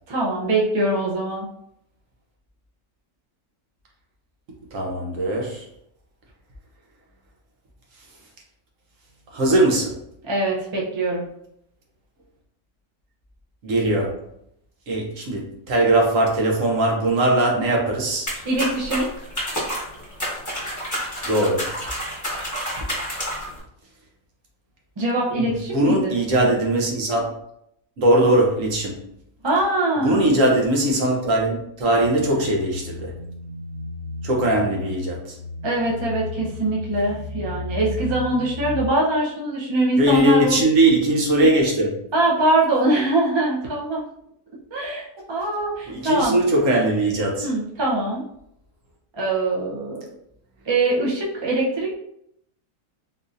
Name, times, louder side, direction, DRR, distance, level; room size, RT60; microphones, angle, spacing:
voice 1, 0.1-1.5 10.2-11.2 18.4-19.1 25.0-26.1 26.4-26.5 29.4-30.3 35.6-40.6 42.1-44.0 44.7-46.4 47.4-48.2 49.1-50.0 50.7-51.9, right 2 dB, 40° right, -3 dB, 0.4 m, -23 dB
voice 2, 4.7-5.6 9.3-10.0 13.6-14.2 14.9-18.3 21.2-21.7 25.4-25.5 25.7-27.3 28.0-29.0 30.0-33.1 34.2-35.4 40.0-42.0 45.9-47.5, right 1 dB, 60° right, -1 dB, 1.1 m, -20 dB
sound 1, 18.3-23.6, equal, 15° left, 1.0 m, -29 dB
sound 2, 32.0-38.9, left 2 dB, 75° left, 1.1 m, -34 dB
3.9 x 2.7 x 2.5 m, 0.74 s
omnidirectional pair, 1.6 m